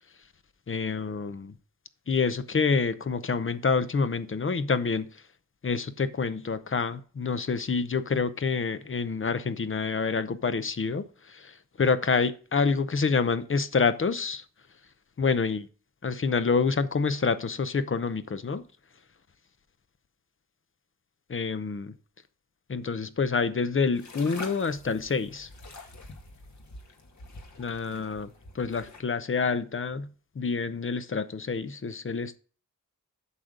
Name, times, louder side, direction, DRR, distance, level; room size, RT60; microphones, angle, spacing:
voice 1, 0.7-1.5 2.1-5.1 5.6-14.4 15.2-15.6 16.0-18.6 21.3-21.9 22.7-25.5 27.6-28.3 28.5-30.1 30.4-32.4, left 5 dB, 40° left, 0.7 m, -27 dB
sound 1, 23.9-29.0, left 2 dB, 60° left, 1.9 m, -46 dB
8.4 x 6.6 x 3.7 m
wide cardioid pair, 105°, 32 cm